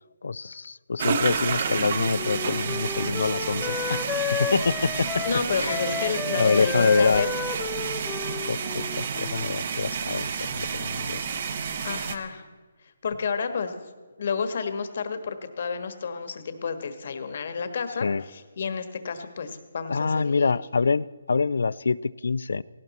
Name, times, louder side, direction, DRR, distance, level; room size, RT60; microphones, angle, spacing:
voice 1, 0.2-4.0 4.4-5.2 5.5-5.8 6.3-7.2 8.4-11.3 18.0-18.2 19.9-22.6, left 4 dB, 75° left, 20 dB, 0.4 m, -25 dB
sound 1, 1.0-12.2, right 6 dB, 40° right, 1.0 m, -30 dB
Wind instrument woodwind instrument, 1.7-9.7, left 6 dB, 10° left, 0.5 m, -33 dB
voice 2, 5.2-7.3 11.8-12.5 13.0-13.7 14.2-20.6, left 5 dB, 50° left, 9 dB, 1.4 m, -30 dB
18.0 x 16.0 x 4.2 m, 1.4 s
hypercardioid pair, 165°, 0 cm